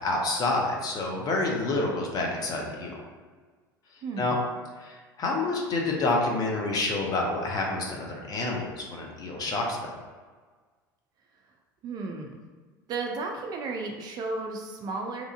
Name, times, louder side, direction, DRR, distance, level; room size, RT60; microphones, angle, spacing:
voice 1, 0.0-2.9 4.2-4.4 4.8-9.9, left 2 dB, 35° left, 0 dB, 0.7 m, -28 dB
voice 2, 4.0-4.4 11.8-12.4 12.9-15.2, right 3 dB, 35° right, 2 dB, 0.4 m, -34 dB
2.9 x 2.4 x 2.4 m, 1.4 s
figure-of-eight pair, 70°, 11 cm